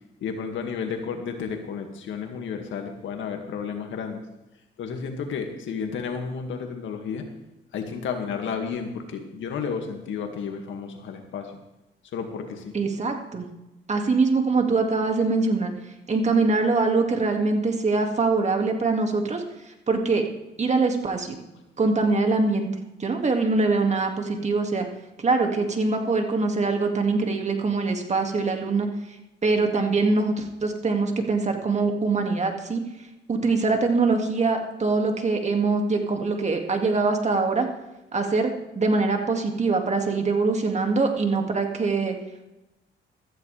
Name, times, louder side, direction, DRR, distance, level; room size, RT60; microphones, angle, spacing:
voice 1, 0.2-4.2 4.8-7.3 7.7-11.5 12.1-12.7, left 6 dB, 75° left, 4 dB, 2.1 m, -32 dB
voice 2, 12.7-13.5 13.9-15.7 16.1-19.4 19.9-20.2 20.6-21.4 21.8-22.7 23.0-24.9 25.2-28.9 29.4-32.8 33.3-37.7 38.1-42.2, right 3 dB, 35° right, 3 dB, 2.2 m, -23 dB
15.0 x 14.0 x 3.4 m, 0.97 s
cardioid pair, 90°, 20 cm